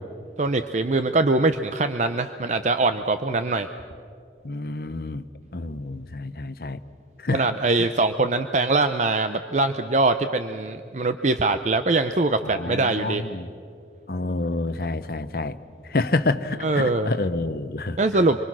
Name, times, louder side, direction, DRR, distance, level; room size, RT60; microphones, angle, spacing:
voice 1, 0.4-3.7 7.3-13.2 16.6-17.1 18.0-18.4, right 3 dB, 40° right, 9 dB, 0.6 m, -22 dB
voice 2, 4.4-5.2 5.5-6.8 7.2-7.4 7.8-7.9 12.4-13.5 14.1-15.6 15.9-18.0, left 2 dB, 55° left, 12 dB, 0.8 m, -28 dB
25.5 x 24.5 x 6.2 m, 2.5 s
head